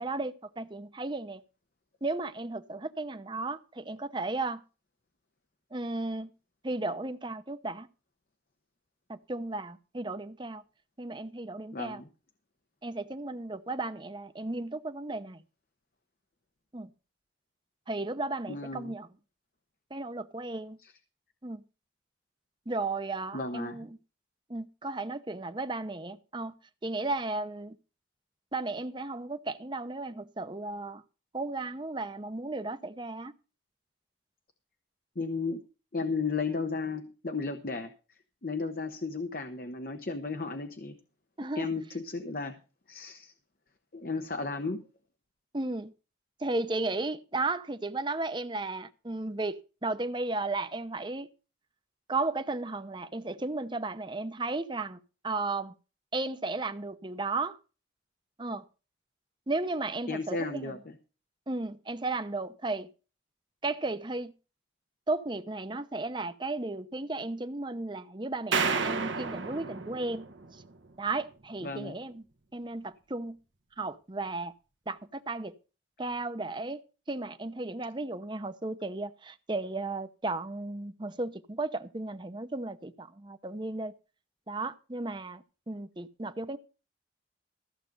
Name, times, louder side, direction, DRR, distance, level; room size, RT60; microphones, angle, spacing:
voice 1, 0.0-1.4 2.0-4.6 5.7-6.3 6.6-7.9 9.1-10.6 11.0-12.0 12.8-15.4 16.7-16.9 17.9-19.1 19.9-20.8 21.4-21.6 22.7-23.9 24.5-26.5 26.8-27.8 28.5-31.0 31.3-33.3 41.4-41.7 45.5-45.9 46.4-51.3 52.1-55.0 55.2-55.7 56.1-57.6 58.4-58.6 59.5-60.8 61.5-62.9 63.6-64.3 65.1-70.3 70.5-70.6 71.0-72.2 72.5-73.4 73.8-74.5 74.9-75.5 76.0-76.8 77.1-83.9 84.5-86.6, right 2 dB, 25° right, 0.8 m, -34 dB
voice 2, 11.7-12.1 18.5-18.9 20.8-20.9 23.3-23.9 35.2-35.6 35.9-37.9 38.4-40.9 41.6-42.6 42.9-43.3 43.9-44.8 60.1-60.9 71.6-72.0, left 4 dB, 50° left, 0.9 m, -34 dB
sound 1, 68.5-70.8, right 5 dB, 85° right, 1.3 m, -31 dB
14.5 x 7.4 x 5.3 m
head